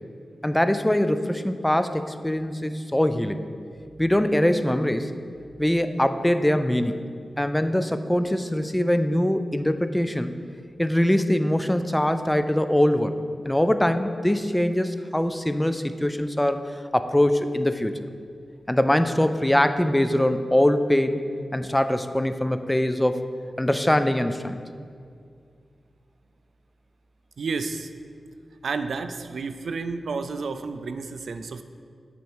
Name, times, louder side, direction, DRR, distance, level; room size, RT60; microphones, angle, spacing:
voice 1, 0.4-3.4 4.0-5.1 5.6-7.0 7.4-10.4 10.8-13.2 13.5-18.0 18.7-21.2 21.5-23.3 23.6-24.6, left 1 dB, 10° left, 10 dB, 0.3 m, -23 dB
voice 2, 27.4-27.9 28.6-31.6, right 4 dB, 80° right, 10 dB, 0.3 m, -31 dB
8.1 x 4.6 x 4.5 m, 2.3 s
wide cardioid pair, 120°, 0 cm